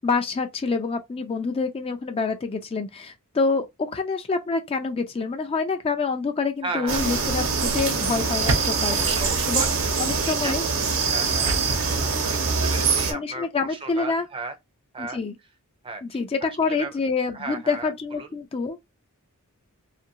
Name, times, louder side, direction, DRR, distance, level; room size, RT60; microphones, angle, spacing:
voice 1, 0.0-9.0 9.5-9.6 10.0-10.7 13.1-14.3 15.0-15.3 16.0-18.8, left 4 dB, 25° left, 0.3 m, -27 dB
voice 2, 6.6-7.2 8.9-10.5 11.0-11.6 12.0-14.5 14.9-15.2 15.8-17.0 17.3-18.3, right 3 dB, 25° right, 0.5 m, -36 dB
sound 1, 6.9-13.1, right 4 dB, 65° right, 0.9 m, -24 dB
2.6 x 2.5 x 2.7 m
head